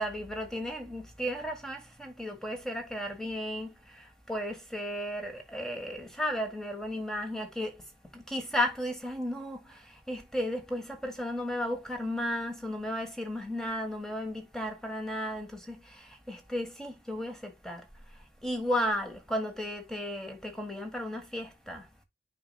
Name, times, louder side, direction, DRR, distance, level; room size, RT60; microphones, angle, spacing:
voice 1, 0.0-7.8 8.1-17.9 18.1-21.9, equal, 5° left, 1.4 m, -34 dB
8.5 x 5.4 x 2.3 m
head